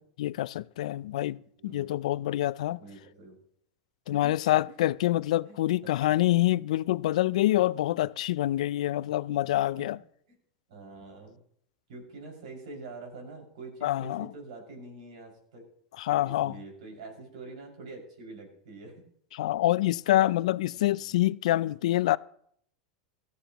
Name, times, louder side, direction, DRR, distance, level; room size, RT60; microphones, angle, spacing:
voice 1, 0.2-2.8 4.1-10.0 13.8-14.3 16.0-16.6 19.3-22.2, left 15 dB, 75° left, 0.4 m, -26 dB
voice 2, 1.6-2.1 2.8-3.4 4.1-4.4 4.7-4.8 5.5-5.6 6.0-6.2 9.8-9.9 10.7-11.4 11.9-15.6 16.1-19.0 20.7-21.1, right 3 dB, 75° right, 6.0 m, -45 dB
18.0 x 14.0 x 3.0 m
hypercardioid pair, 120°, 4 cm